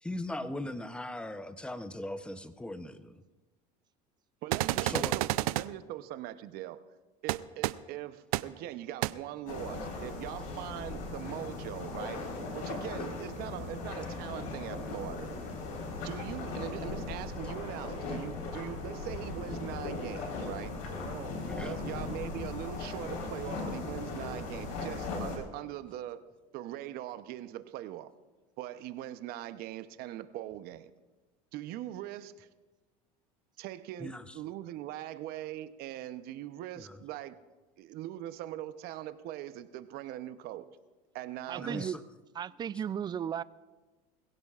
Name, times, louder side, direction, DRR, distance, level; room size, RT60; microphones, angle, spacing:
voice 1, 0.0-3.2 4.8-5.2 21.4-21.8 34.0-34.2 36.8-37.0 41.6-42.0, left 1 dB, 5° left, 0.7 m, -39 dB
voice 2, 4.4-6.8 7.2-12.3 12.5-15.3 16.0-20.8 21.6-26.2 26.5-28.1 28.6-30.9 31.5-32.5 33.6-37.4 37.8-40.7 41.1-41.9, right 13 dB, 60° right, 0.8 m, -41 dB
sound 1, 4.5-5.6 7.3-7.4 7.6-7.7 8.3-8.4 9.0-9.1, right 18 dB, 90° right, 0.4 m, -29 dB
sound 2, 9.5-25.4, left 3 dB, 80° left, 4.1 m, -38 dB
voice 3, 21.0-21.9 41.5-42.0 42.3-43.4, right 9 dB, 25° right, 0.3 m, -36 dB
sound 3, 21.3-25.7, left 10 dB, 45° left, 0.8 m, -47 dB
22.0 x 16.0 x 2.5 m
supercardioid pair, 110°, 18 cm